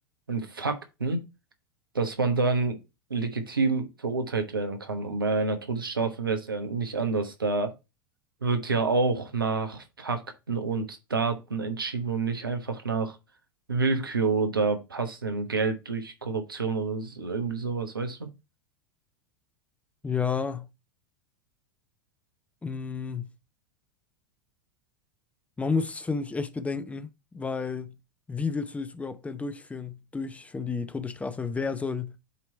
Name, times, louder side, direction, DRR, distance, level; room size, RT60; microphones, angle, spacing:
voice 1, 0.3-1.2 1.9-2.8 3.1-7.7 8.4-10.2 10.5-13.2 13.7-18.3, right 4 dB, 85° right, 1.0 m, -28 dB
voice 2, 20.0-20.7 22.6-23.3 25.6-27.9 28.3-32.1, left 5 dB, 10° left, 0.7 m, -31 dB
8.2 x 3.1 x 4.3 m
figure-of-eight pair, 85°, 11 cm